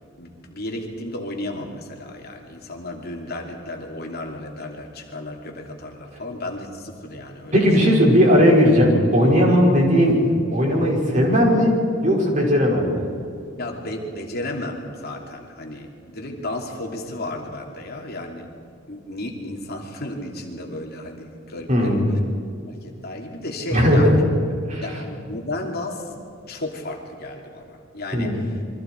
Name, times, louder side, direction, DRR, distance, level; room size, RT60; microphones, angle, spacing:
voice 1, 0.2-7.5 7.8-7.9 9.5-9.6 13.6-18.5 18.9-22.0 22.7-24.2 24.8-26.1 26.5-28.5, left 1 dB, 50° left, 1 dB, 2.9 m, -33 dB
voice 2, 7.5-10.2 10.5-11.7 12.0-13.0 21.7-22.1 23.7-24.2 24.7-24.8 28.1-28.4, equal, 40° right, -2 dB, 5.5 m, -17 dB
28.5 x 24.0 x 4.6 m, 2.5 s
head